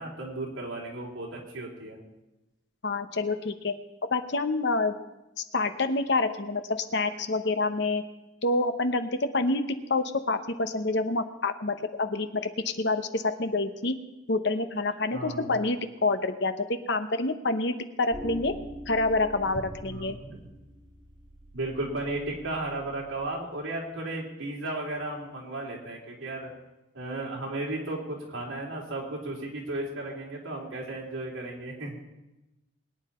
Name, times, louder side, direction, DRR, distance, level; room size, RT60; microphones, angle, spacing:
voice 1, 0.0-2.0 15.1-15.6 19.8-20.5 21.5-26.5 26.9-32.0, right 2 dB, 70° right, -3 dB, 3.6 m, -35 dB
voice 2, 2.8-3.7 4.1-5.0 5.5-8.0 8.4-9.6 9.9-13.9 14.3-18.5 18.9-20.2, left 3 dB, 55° left, 9 dB, 0.9 m, -27 dB
sound 1, 18.1-23.2, right 1 dB, 25° right, 2.0 m, -44 dB
22.0 x 9.7 x 4.4 m, 0.99 s
head